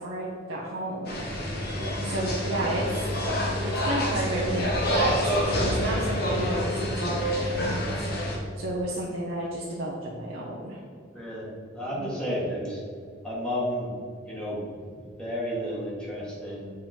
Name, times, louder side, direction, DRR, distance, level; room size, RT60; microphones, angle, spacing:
voice 1, 0.0-1.2 2.0-3.1 3.6-5.2 5.5-8.1 8.6-10.8 11.9-12.1, right 1 dB, 80° right, -5 dB, 0.9 m, -31 dB
sound 1, 1.0-8.4, equal, 55° left, 1.4 m, -27 dB
voice 2, 11.1-12.8 13.2-13.9 14.2-16.7, equal, 5° left, -6 dB, 1.7 m, -32 dB
7.4 x 3.8 x 4.4 m, 2.2 s
head